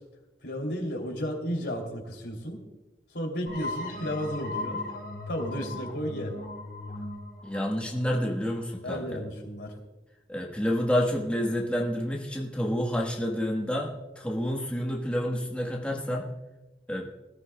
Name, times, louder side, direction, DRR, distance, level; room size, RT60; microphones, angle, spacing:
voice 1, 0.4-2.6 3.1-4.8 5.3-6.3 8.8-9.7, equal, 90° left, 1 dB, 3.0 m, -33 dB
sound 1, 3.5-8.9, left 2 dB, 55° left, 4.4 m, -38 dB
voice 2, 7.4-9.2 10.3-16.3 16.9-17.1, equal, 5° left, -1 dB, 1.3 m, -29 dB
21.0 x 14.0 x 2.3 m, 1.1 s
head